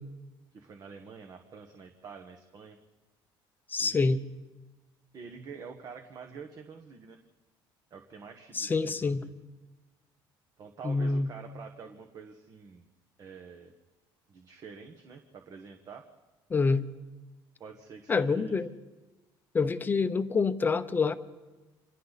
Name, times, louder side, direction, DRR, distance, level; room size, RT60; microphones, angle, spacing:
voice 1, 0.5-2.8 3.8-4.2 5.1-7.2 7.9-9.3 10.6-12.9 13.2-13.7 14.3-16.0 17.6-18.6, right 5 dB, 40° right, 5 dB, 1.5 m, -47 dB
voice 2, 3.7-4.2 8.5-9.2 10.8-11.3 16.5-16.9 18.1-18.7 19.5-21.1, left 4 dB, 20° left, 10 dB, 0.9 m, -26 dB
29.5 x 26.5 x 4.2 m, 1.2 s
cardioid pair, 145°, 9 cm